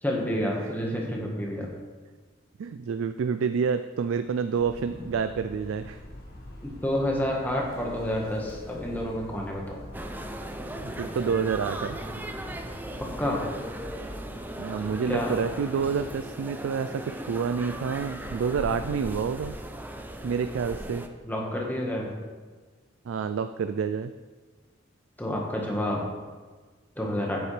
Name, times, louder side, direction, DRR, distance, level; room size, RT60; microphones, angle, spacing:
voice 1, 0.0-1.7 6.6-9.8 13.2-13.4 15.1-15.3 21.2-22.1 25.2-26.0 27.0-27.4, left 1 dB, 10° left, -2 dB, 1.4 m, -29 dB
voice 2, 2.6-6.0 10.8-12.2 14.6-19.5 20.2-21.0 23.1-24.1, right 6 dB, 85° right, 9 dB, 0.3 m, -28 dB
sound 1, 4.5-16.1, left 1 dB, 55° left, 1.8 m, -45 dB
sound 2, 9.9-21.1, right 1 dB, 10° right, 0.4 m, -38 dB
9.2 x 7.1 x 3.3 m, 1.4 s
head